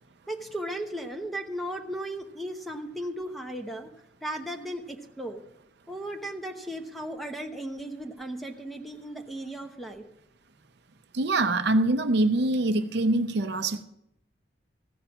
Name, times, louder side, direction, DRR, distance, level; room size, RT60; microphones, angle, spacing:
voice 1, 0.3-3.9 4.2-5.4 5.9-10.0, right 1 dB, ahead, 3 dB, 0.9 m, -36 dB
voice 2, 11.1-13.8, right 2 dB, 60° right, 9 dB, 0.6 m, -24 dB
15.0 x 5.7 x 6.9 m, 0.80 s
head